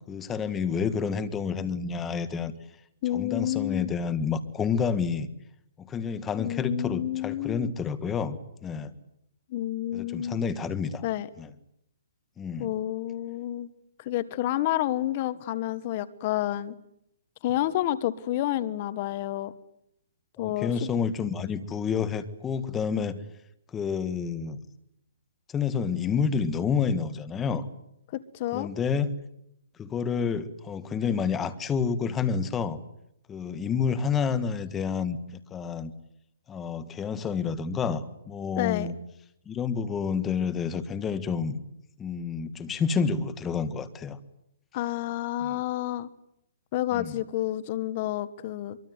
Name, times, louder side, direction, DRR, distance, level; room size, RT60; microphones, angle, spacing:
voice 1, 0.1-2.5 3.1-5.3 5.8-8.9 9.9-11.0 11.4-11.5 12.4-12.7 20.4-23.2 23.7-24.6 25.5-27.7 28.5-29.2 29.8-32.8 33.3-35.9 36.5-38.9 39.4-41.6 42.0-44.2 45.4-45.6 46.9-47.2, left 6 dB, 10° left, 12 dB, 1.6 m, -29 dB
voice 2, 3.0-3.9 6.4-7.7 9.5-10.4 11.0-11.3 12.6-13.7 14.0-16.7 17.4-19.5 20.4-20.7 28.1-28.7 38.6-38.9 44.7-46.1 46.7-48.8, left 13 dB, 35° left, 15 dB, 1.3 m, -29 dB
24.0 x 23.5 x 9.5 m, 0.78 s
hypercardioid pair, 160°, 0 cm